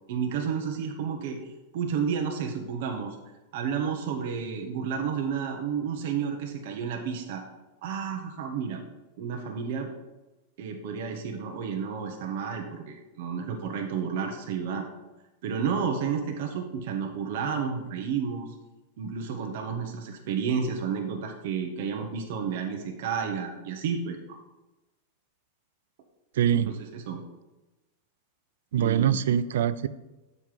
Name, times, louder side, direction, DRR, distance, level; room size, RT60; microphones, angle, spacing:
voice 1, 0.1-1.4 1.7-3.2 3.5-7.4 7.8-8.8 9.2-9.9 10.6-14.9 15.4-18.5 19.0-24.4 26.5-27.2 28.8-29.2, right 6 dB, 65° right, 3 dB, 1.1 m, -31 dB
voice 2, 26.4-26.7 28.7-29.9, right 10 dB, 80° right, 14 dB, 0.4 m, -23 dB
7.5 x 5.6 x 4.8 m, 1.1 s
supercardioid pair, 130°, 0 cm